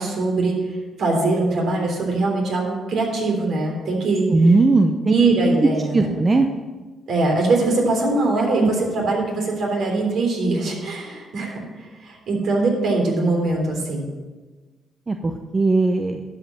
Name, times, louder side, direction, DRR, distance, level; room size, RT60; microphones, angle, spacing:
voice 1, 0.0-4.3 5.1-6.1 7.1-14.1, right 3 dB, 65° right, 0 dB, 3.5 m, -22 dB
voice 2, 4.3-5.1 5.9-6.5 8.6-8.7 15.1-16.2, right 3 dB, 30° right, 5 dB, 0.7 m, -18 dB
12.0 x 5.3 x 7.4 m, 1.3 s
cardioid pair, 90°, 0 cm